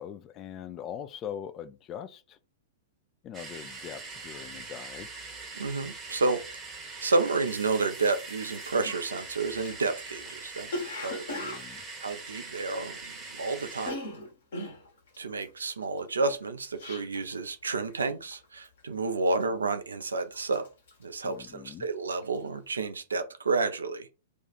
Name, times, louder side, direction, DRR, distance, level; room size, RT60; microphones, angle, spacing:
voice 1, 0.0-2.4 3.2-5.1 11.4-11.8 21.2-21.9, left 9 dB, 25° left, 0.3 m, -41 dB
sound 1, 3.3-13.9, right 3 dB, 20° right, 0.9 m, -42 dB
voice 2, 5.5-6.4 7.0-10.7 11.0-14.0 15.2-20.7 21.0-24.1, right 3 dB, 70° right, 0.5 m, -30 dB
Cough, 8.4-8.5 8.8-13.3 13.6-17.4 17.7-18.0 18.3-18.8 19.3-19.8 20.1-21.8 22.1-22.5, left 1 dB, 60° left, 1.1 m, -40 dB
2.6 x 2.4 x 4.1 m
figure-of-eight pair, 105°, 0 cm